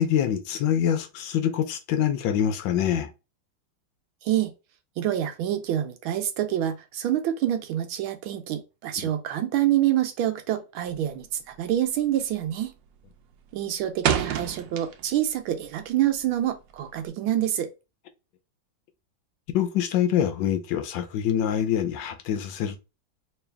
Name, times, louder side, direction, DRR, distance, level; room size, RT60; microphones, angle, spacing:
voice 1, 0.0-3.1 9.0-9.1 19.5-22.8, left 9 dB, 75° left, 1.3 m, -25 dB
voice 2, 5.0-12.7 13.5-17.7, right 12 dB, 90° right, 1.6 m, -26 dB
sound 1, 10.9-11.2 11.5-11.9 12.2-12.6 13.0-15.3 15.6-17.1, right 9 dB, 75° right, 1.2 m, -29 dB
3.2 x 3.1 x 3.4 m
omnidirectional pair, 2.2 m